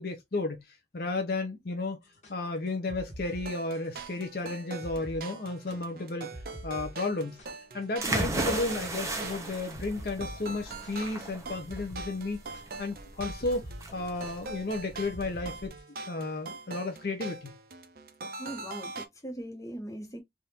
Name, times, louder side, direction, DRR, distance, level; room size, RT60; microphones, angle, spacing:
voice 1, 0.0-2.0 2.3-6.3 6.6-7.4 7.7-15.7 16.1-17.5, left 2 dB, 55° left, 0.7 m, -33 dB
sound 1, 2.0-4.1 4.4-4.5 4.8-5.2 5.5-7.8 8.2-8.6 8.9-16.2, equal, 40° left, 1.3 m, -46 dB
sound 2, 3.2-19.1, right 3 dB, 55° right, 0.6 m, -43 dB
sound 3, 8.0-15.7, right 2 dB, 15° right, 0.8 m, -35 dB
voice 2, 18.4-20.2, equal, 20° left, 1.1 m, -40 dB
3.5 x 2.6 x 2.8 m
head